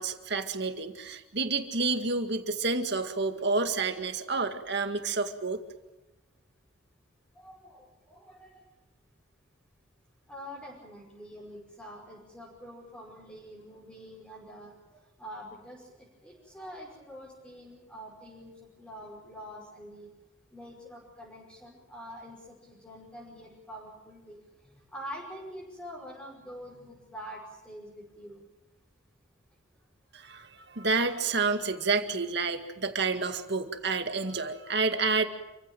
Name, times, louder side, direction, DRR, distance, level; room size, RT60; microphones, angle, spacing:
voice 1, 0.0-5.6 30.1-35.3, right 4 dB, 55° right, 7 dB, 2.1 m, -29 dB
voice 2, 7.3-8.6 10.3-14.7 15.2-20.1 20.5-24.4 24.9-28.4, equal, 5° left, -5 dB, 5.6 m, -45 dB
28.5 x 15.5 x 9.2 m, 1.1 s
head